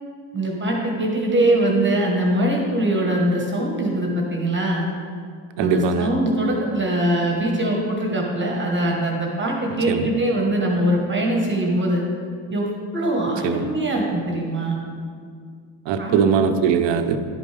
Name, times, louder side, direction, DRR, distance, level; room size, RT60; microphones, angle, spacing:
voice 1, 0.3-4.9 5.6-12.0 12.5-14.8 16.0-16.2, right 1 dB, 25° right, 0 dB, 1.2 m, -22 dB
voice 2, 5.6-6.1 9.9-10.1 13.4-13.6 15.9-17.2, right 7 dB, 70° right, 8 dB, 0.7 m, -20 dB
11.0 x 5.3 x 3.3 m, 2.2 s
cardioid pair, 90°, 46 cm